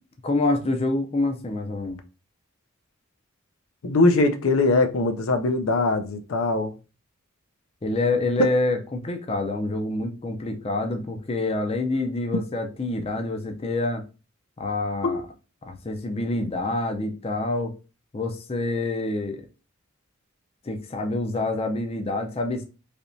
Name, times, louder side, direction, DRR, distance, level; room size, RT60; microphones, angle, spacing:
voice 1, 0.2-2.0 7.8-14.0 14.6-15.2 15.7-17.8 18.1-19.5 20.6-22.6, left 2 dB, 30° left, 0.5 m, -27 dB
voice 2, 3.8-6.8 8.4-8.5 15.0-15.2, left 2 dB, 80° left, 0.5 m, -21 dB
3.3 x 2.9 x 2.6 m
head